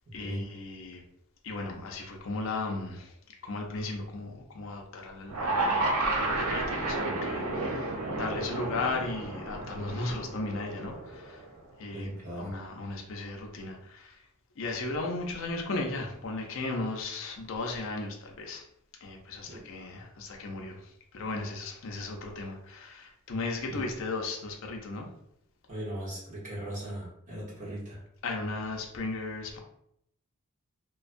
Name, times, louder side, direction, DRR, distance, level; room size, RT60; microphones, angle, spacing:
voice 1, 0.1-1.0 1.4-3.2 3.4-5.9 6.2-11.5 11.8-14.2 14.6-18.7 19.0-25.1 28.2-29.6, left 3 dB, 60° left, 1 dB, 0.5 m, -36 dB
sound 1, 5.3-11.5, right 2 dB, 85° right, 0.6 m, -31 dB
voice 2, 11.9-12.6 19.4-19.6 23.7-23.8 25.7-28.0, right 1 dB, 35° right, -6 dB, 1.0 m, -38 dB
2.5 x 2.2 x 2.4 m, 0.76 s
head